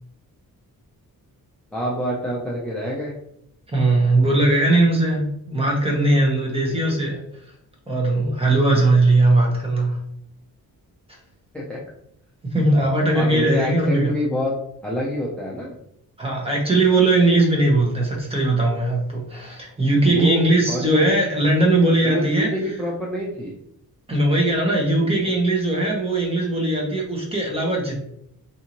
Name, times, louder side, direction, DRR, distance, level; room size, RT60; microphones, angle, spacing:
voice 1, 1.7-3.1 6.7-6.8 11.5-11.8 13.1-14.5 14.8-15.8 20.1-21.1 22.0-23.6, equal, 5° left, -5 dB, 0.5 m, -26 dB
voice 2, 3.7-7.2 7.9-10.0 12.4-14.1 16.2-22.7 24.1-28.0, right 2 dB, 15° right, -2 dB, 0.9 m, -19 dB
3.9 x 2.7 x 2.9 m, 0.73 s
wide cardioid pair, 165°, 36 cm